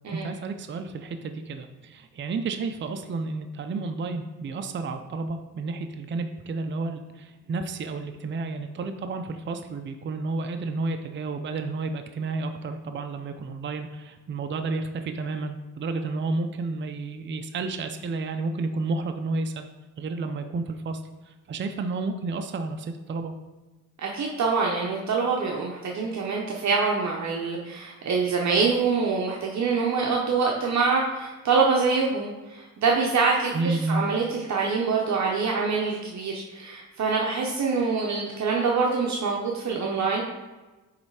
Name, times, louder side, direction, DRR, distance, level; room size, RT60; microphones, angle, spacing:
voice 1, 0.0-19.7 20.0-23.3 33.5-34.0, right 3 dB, 35° right, 6 dB, 0.5 m, -31 dB
voice 2, 24.0-40.2, right 4 dB, 55° right, -2 dB, 0.9 m, -25 dB
8.6 x 3.3 x 4.8 m, 1.2 s
cardioid pair, 105°, 33 cm